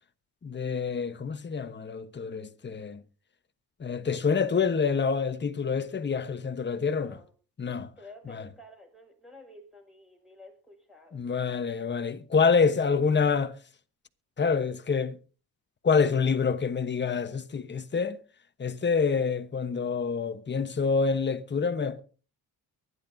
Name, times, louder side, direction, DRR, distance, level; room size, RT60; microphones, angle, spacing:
voice 1, 0.4-3.0 3.8-7.2 7.6-7.9 8.3-8.4 11.1-13.6 14.4-15.2 15.8-18.2 18.6-22.0, left 5 dB, 30° left, 1.2 m, -27 dB
voice 2, 7.0-7.3 8.0-11.7, left 1 dB, ahead, 6.3 m, -51 dB
24.0 x 11.0 x 2.7 m
cardioid pair, 95°, 38 cm